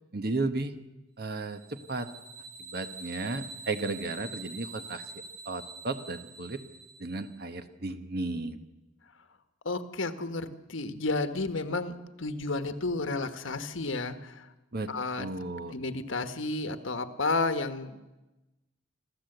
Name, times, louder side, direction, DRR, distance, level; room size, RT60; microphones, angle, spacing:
voice 1, 0.1-0.8 1.2-2.1 2.6-6.6 7.0-8.7 14.7-15.7, right 3 dB, 50° right, 9 dB, 1.2 m, -34 dB
sound 1, 1.4-7.3, right 4 dB, 85° right, 4.6 m, -45 dB
voice 2, 9.6-14.5 14.9-15.3 15.7-18.0, left 3 dB, 70° left, 10 dB, 1.3 m, -32 dB
26.5 x 14.0 x 7.9 m, 1.1 s
head